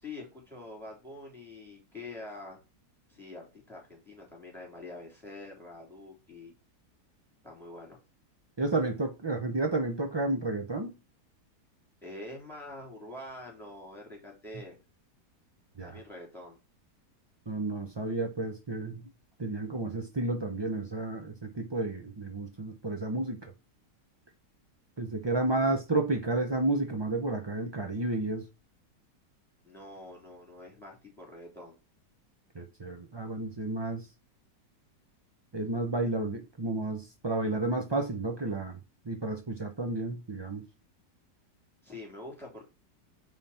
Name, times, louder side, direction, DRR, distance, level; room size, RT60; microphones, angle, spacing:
voice 1, 0.0-2.6 3.1-6.5 7.4-8.0 12.0-14.8 15.8-16.6 29.6-31.8 41.8-42.6, left 2 dB, ahead, 3.4 m, -45 dB
voice 2, 8.6-10.9 15.8-16.0 17.5-19.0 19.4-23.5 25.0-28.5 32.5-34.1 35.5-38.8 39.0-40.7, right 2 dB, 35° right, 0.4 m, -31 dB
9.1 x 3.8 x 4.3 m
omnidirectional pair, 1.9 m